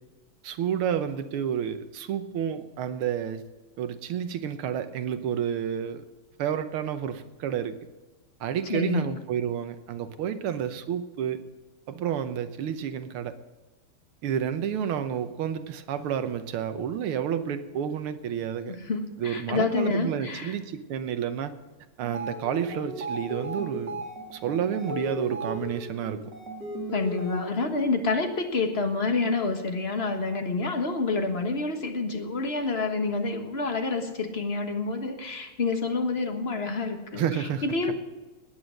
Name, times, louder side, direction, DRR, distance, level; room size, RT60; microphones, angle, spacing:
voice 1, 0.4-3.4 3.8-6.0 6.4-7.8 8.4-11.4 11.9-13.3 14.2-18.8 19.2-21.5 22.0-24.0 24.3-26.3 37.1-37.9, right 8 dB, 80° right, 10 dB, 1.8 m, -30 dB
voice 2, 8.7-9.1 18.7-20.6 26.9-37.9, left 3 dB, 30° left, 5 dB, 1.5 m, -28 dB
sound 1, 22.0-27.8, right 1 dB, 55° right, 3.1 m, -36 dB
19.0 x 8.9 x 6.4 m, 1.2 s
omnidirectional pair, 2.4 m